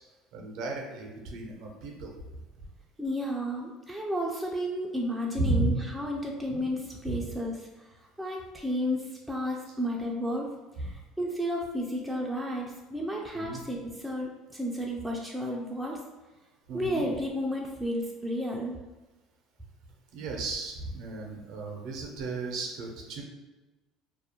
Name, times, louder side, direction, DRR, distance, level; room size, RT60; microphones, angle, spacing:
voice 1, 0.3-2.1 5.3-5.7 6.5-6.6 7.1-7.2 13.3-13.6 16.7-17.1 20.1-23.2, right 2 dB, 65° right, 1 dB, 0.6 m, -33 dB
voice 2, 3.0-7.9 8.2-10.5 10.8-16.0 16.7-18.8, equal, 5° right, -2 dB, 0.4 m, -32 dB
2.3 x 2.0 x 2.9 m, 1.1 s
supercardioid pair, 85°, 0 cm